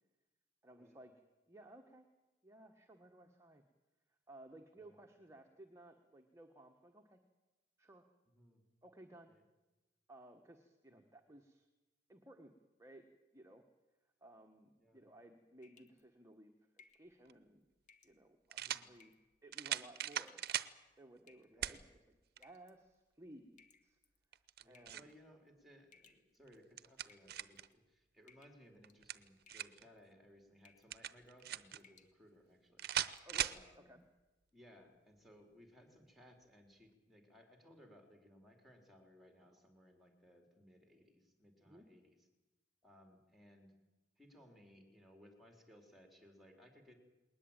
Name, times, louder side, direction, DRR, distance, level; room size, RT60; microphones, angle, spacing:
voice 1, 0.6-1.1 1.5-2.1 2.4-3.6 4.3-7.2 7.8-8.1 8.8-9.3 10.1-11.7 12.1-12.5 12.8-13.0 13.3-13.6 14.2-17.6 18.0-19.1 19.4-20.4 20.7-22.0 22.4-24.0 24.6-25.1 33.2-34.0 41.6-41.9, right 1 dB, 15° right, 4 dB, 1.4 m, -58 dB
voice 2, 8.3-8.6 9.3-9.4 10.9-11.0 14.8-15.0 18.5-19.0 21.5-21.8 24.6-32.9 33.5-33.9 34.5-42.2 42.8-43.7 44.2-47.0, equal, ahead, 3 dB, 4.0 m, -63 dB
sound 1, 15.6-16.0 16.8-17.1 17.9-18.2 19.0-19.3 20.1-20.5 21.3-21.7 22.4-22.8 23.6-24.2 24.7-25.1 25.9-26.6 27.1-27.7 28.3-28.6 28.9-29.2 29.5-30.0 30.6-30.9 31.3-31.5 31.8-32.1 32.5-32.6 33.0-33.3, left 5 dB, 45° left, 1.7 m, -66 dB
sound 2, 17.3-17.4 18.5-18.9 19.5-20.7 21.6-21.8 22.4-22.5 24.3-25.1 26.5-27.7 28.8-29.8 30.9-31.8 32.8-33.6, right 11 dB, 60° right, 0.8 m, -40 dB
20.5 x 19.5 x 9.0 m, 1.1 s
head